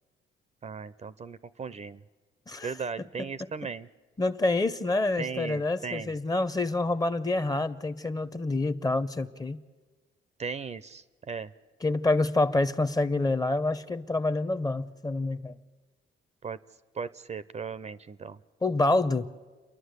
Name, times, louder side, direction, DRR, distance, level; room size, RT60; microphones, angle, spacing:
voice 1, 0.6-2.0 2.6-3.9 5.2-6.1 10.4-11.5 16.4-16.6 16.9-18.4, right 5 dB, 35° right, 16 dB, 0.5 m, -37 dB
voice 2, 4.2-9.6 11.8-15.6 18.6-19.3, left 2 dB, 20° left, 14 dB, 0.7 m, -27 dB
29.0 x 11.0 x 8.1 m, 1.4 s
cardioid pair, 90°, 20 cm